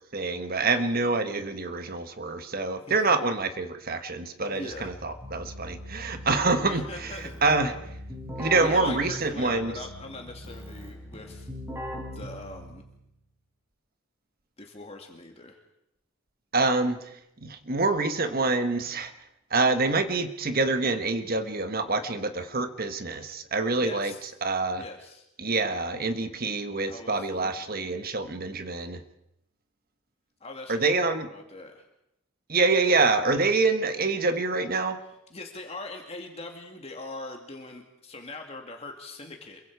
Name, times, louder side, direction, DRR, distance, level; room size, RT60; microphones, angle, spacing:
voice 1, 0.1-7.1 7.4-7.7 8.4-9.7 16.5-17.0 17.4-19.1 19.5-24.1 24.4-24.8 25.4-29.0 30.7-31.3 32.5-35.0, right 3 dB, 45° right, 9 dB, 1.3 m, -26 dB
voice 2, 2.8-3.2 4.5-4.9 6.7-7.4 8.4-11.5 12.1-12.8 14.6-15.6 23.8-24.2 24.7-25.3 26.8-27.8 30.4-31.9 35.3-39.6, left 2 dB, 30° left, 2 dB, 2.2 m, -41 dB
Keyboard (musical), 4.7-13.0, equal, 10° right, 5.0 m, -40 dB
27.5 x 23.0 x 4.7 m, 0.80 s
head